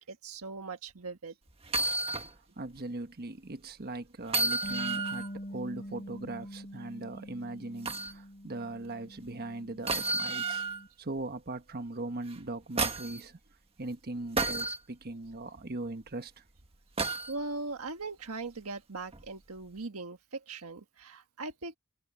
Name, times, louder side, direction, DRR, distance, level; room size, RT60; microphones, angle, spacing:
voice 1, 0.0-1.3 5.2-5.3 17.3-21.8, right 3 dB, 85° right, 1.5 m, -40 dB
sound 1, 1.6-2.3 2.8-2.9 4.3-5.3 7.8-8.1 9.9-10.8 12.3-13.2 14.4-14.8 17.0-17.3 19.1-19.3, right 3 dB, 25° right, 1.7 m, -31 dB
voice 2, 2.6-10.6 11.0-13.4 13.8-16.4, right 2 dB, 45° right, 1.3 m, -40 dB
Bass guitar, 4.6-10.9, equal, 35° left, 4.6 m, -44 dB
head